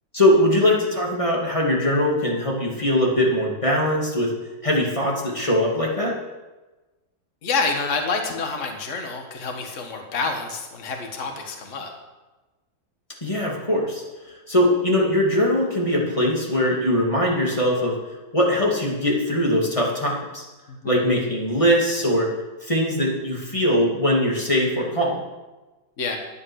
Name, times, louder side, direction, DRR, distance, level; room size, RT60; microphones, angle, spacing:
voice 1, 0.1-4.3 4.6-6.2 13.2-14.0 14.5-18.0 18.3-20.4 20.8-22.3 22.6-25.2, left 1 dB, 15° left, -3 dB, 2.6 m, -21 dB
voice 2, 7.4-11.9 20.7-20.8 26.0-26.2, left 4 dB, 45° left, 3 dB, 1.7 m, -27 dB
11.0 x 8.9 x 6.4 m, 1.2 s
omnidirectional pair, 2.0 m